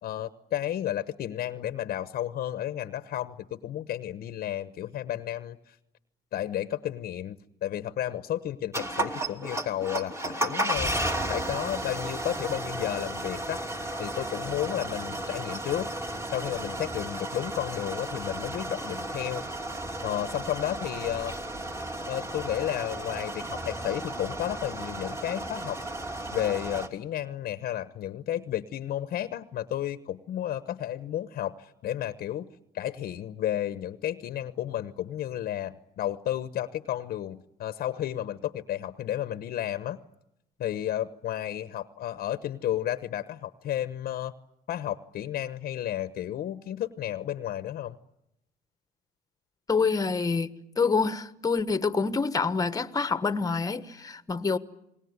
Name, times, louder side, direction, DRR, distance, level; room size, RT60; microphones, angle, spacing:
voice 1, 0.0-5.8 6.3-10.9 11.3-13.6 14.0-15.9 16.3-19.4 20.0-21.3 22.1-25.8 26.3-32.5 32.7-40.0 40.6-44.3 44.7-48.0, left 12 dB, 60° left, 1.0 m, -32 dB
sound 1, 8.7-26.9, right 1 dB, 15° right, 2.9 m, -34 dB
voice 2, 49.7-54.6, left 4 dB, 20° left, 1.3 m, -27 dB
28.5 x 20.0 x 9.6 m
cardioid pair, 110°, 17 cm